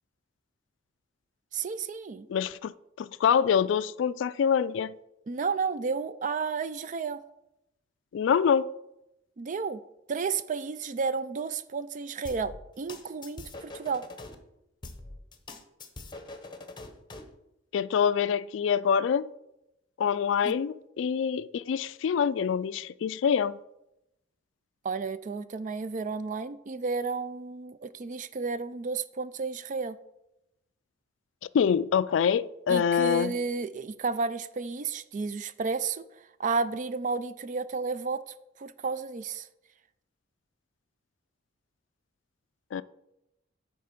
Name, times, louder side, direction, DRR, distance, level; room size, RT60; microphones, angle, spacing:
voice 1, 1.5-2.3 5.3-7.2 9.4-9.8 10.1-14.0 20.4-20.6 24.8-30.0 32.7-36.0 36.4-39.5, right 4 dB, 40° right, 0.4 m, -32 dB
voice 2, 2.3-2.7 3.0-4.9 8.1-8.7 17.7-19.3 20.0-23.6 31.5-33.3 42.7-42.8, left 7 dB, 75° left, 0.3 m, -25 dB
sound 1, 12.2-14.3 14.8-17.3, left 2 dB, 25° left, 0.8 m, -43 dB
8.4 x 4.5 x 5.9 m
head